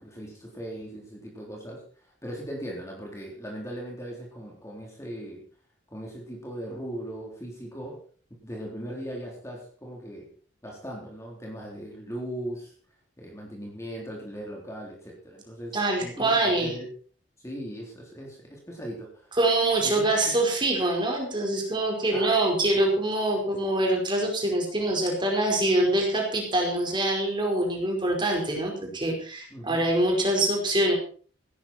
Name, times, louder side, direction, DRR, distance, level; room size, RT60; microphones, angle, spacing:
voice 1, 0.0-5.4 5.9-8.0 8.4-10.3 10.6-12.7 13.2-16.9 17.4-19.3 19.8-20.4 22.1-22.6 29.5-29.8, equal, 15° left, -2 dB, 3.8 m, -39 dB
voice 2, 15.7-16.8 19.3-30.9, right 1 dB, 25° right, 0 dB, 4.8 m, -24 dB
16.5 x 13.5 x 4.5 m, 0.43 s
head